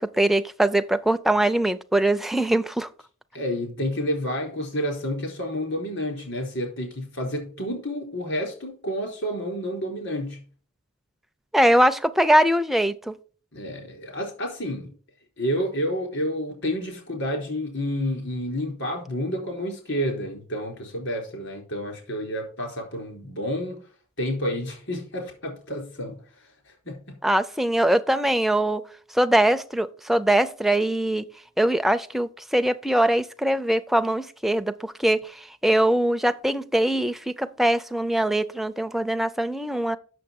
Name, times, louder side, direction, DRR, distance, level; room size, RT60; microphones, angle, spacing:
voice 1, 0.0-2.9 11.5-13.1 27.2-28.8 29.1-31.2 31.6-40.0, right 1 dB, ahead, 0.4 m, -22 dB
voice 2, 3.3-10.4 13.5-14.9 15.4-23.8 24.2-26.5 26.9-27.0, equal, 65° left, 4.2 m, -29 dB
7.7 x 6.7 x 5.2 m
head